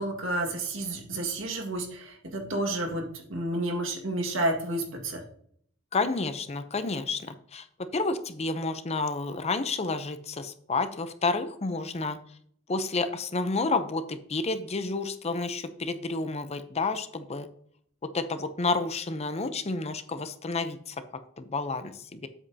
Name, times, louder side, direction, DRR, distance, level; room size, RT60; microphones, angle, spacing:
voice 1, 0.0-5.2, right 1 dB, 85° right, 2 dB, 1.9 m, -30 dB
voice 2, 5.9-12.2 12.7-17.5 18.1-21.0 21.4-22.3, left 3 dB, 35° left, 10 dB, 0.6 m, -30 dB
8.1 x 7.5 x 2.8 m, 0.64 s
head